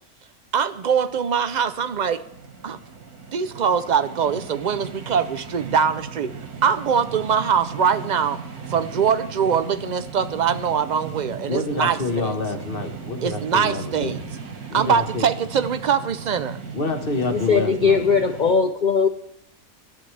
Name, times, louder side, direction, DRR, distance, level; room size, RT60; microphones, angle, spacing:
voice 1, 0.5-2.2 2.6-2.8 3.3-6.3 6.6-8.4 8.7-12.3 13.2-14.2 14.7-16.6, right 7 dB, 65° right, 0.4 m, -22 dB
sound 1, 0.7-18.5, right 5 dB, 90° right, 2.1 m, -37 dB
voice 2, 11.5-14.2 14.7-15.3 16.7-18.0, left 3 dB, 40° left, 1.5 m, -27 dB
voice 3, 17.3-19.1, left 5 dB, 65° left, 0.4 m, -19 dB
19.0 x 11.5 x 3.3 m
omnidirectional pair, 1.5 m